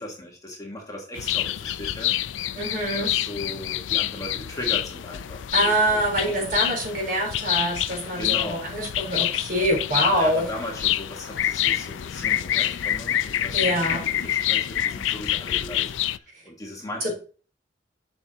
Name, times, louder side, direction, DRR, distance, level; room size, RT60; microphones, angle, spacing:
voice 1, 0.0-2.2 3.0-6.4 8.2-8.6 9.9-16.2 16.4-17.1, left 1 dB, 20° left, 0 dB, 1.4 m, -37 dB
sound 1, 1.1-16.2, left 12 dB, 80° left, 0.4 m, -27 dB
voice 2, 2.5-3.1 5.5-10.5 13.5-14.0 17.0-17.1, right 1 dB, 50° right, 0 dB, 3.8 m, -25 dB
7.9 x 6.1 x 2.8 m, 0.38 s
head